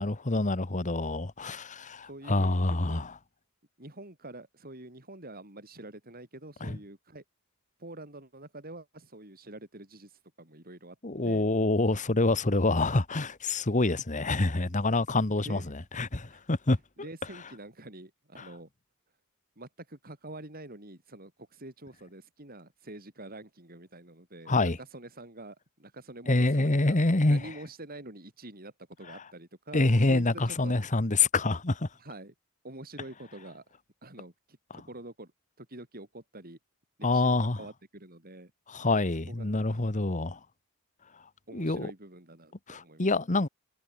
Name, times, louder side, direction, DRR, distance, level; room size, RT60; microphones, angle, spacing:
voice 1, 0.0-3.1 6.6-6.7 11.0-15.6 15.9-16.8 24.5-24.8 26.3-27.4 29.7-31.9 37.0-37.6 38.7-40.4 41.5-41.9 42.7-43.5, left 2 dB, 35° left, 1.3 m, -26 dB
voice 2, 2.1-3.0 3.8-7.2 7.8-11.0 11.2-11.4 15.4-15.7 16.3-16.4 17.0-18.7 19.6-27.0 27.3-28.7 29.0-30.8 32.0-32.3 32.6-33.6 34.0-35.3 35.6-36.6 37.0-38.5 39.3-39.8 41.5-43.3, right 2 dB, 40° right, 6.0 m, -46 dB
head